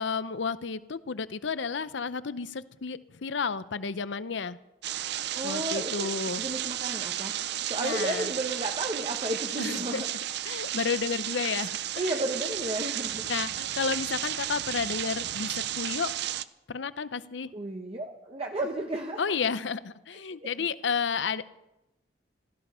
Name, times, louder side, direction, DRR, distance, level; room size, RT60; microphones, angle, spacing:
voice 1, 0.0-4.6 5.4-6.4 7.8-8.3 9.6-10.0 10.4-12.2 13.3-16.1 16.7-17.5 19.2-21.6, left 5 dB, 70° left, 16 dB, 0.6 m, -32 dB
sound 1, 4.8-16.4, right 12 dB, 60° right, 0.5 m, -33 dB
voice 2, 5.3-6.1 6.4-7.4 7.7-10.1 12.0-13.3 17.5-19.4 20.3-20.5, right 1 dB, 30° right, 2 dB, 1.0 m, -33 dB
16.5 x 13.5 x 5.6 m, 0.93 s
head